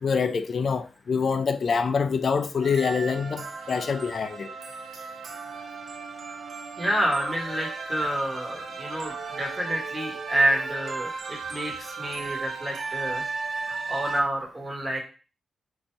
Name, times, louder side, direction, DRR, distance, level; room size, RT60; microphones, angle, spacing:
voice 1, 0.0-4.5, left 5 dB, 40° left, 0.4 m, -25 dB
sound 1, 2.6-14.2, right 4 dB, 50° right, 0.7 m, -35 dB
voice 2, 6.8-15.0, right 1 dB, 15° right, 1.2 m, -28 dB
4.0 x 2.7 x 4.4 m
wide cardioid pair, 175°, 0 cm